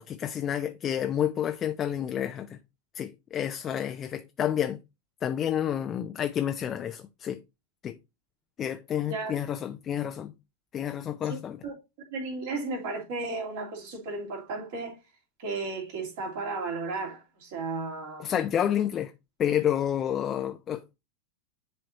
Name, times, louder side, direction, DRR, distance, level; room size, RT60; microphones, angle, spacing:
voice 1, 0.0-2.6 2.9-4.8 5.2-7.4 7.8-8.0 8.6-10.3 10.7-11.6 18.2-19.1 19.4-20.9, left 10 dB, 25° left, 0.5 m, -29 dB
voice 2, 9.0-9.3 11.2-11.8 12.1-15.0 15.4-18.3, right 3 dB, 50° right, 2.6 m, -34 dB
10.0 x 4.1 x 2.7 m
figure-of-eight pair, 90°, 0 cm